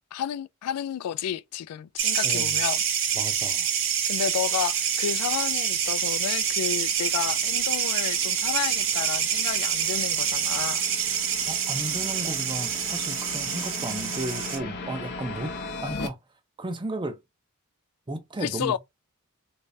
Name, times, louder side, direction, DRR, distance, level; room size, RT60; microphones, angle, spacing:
voice 1, 0.1-2.8 4.1-10.8 18.4-18.8, left 9 dB, 85° left, 0.3 m, -31 dB
sound 1, 2.0-14.6, right 8 dB, 60° right, 0.7 m, -26 dB
voice 2, 2.2-2.6 3.1-3.7 11.5-15.5 15.8-16.2 16.6-17.2 18.1-18.8, right 2 dB, 20° right, 0.5 m, -34 dB
sound 2, 4.8-16.1, left 3 dB, 50° left, 0.6 m, -40 dB
3.3 x 3.2 x 2.6 m
head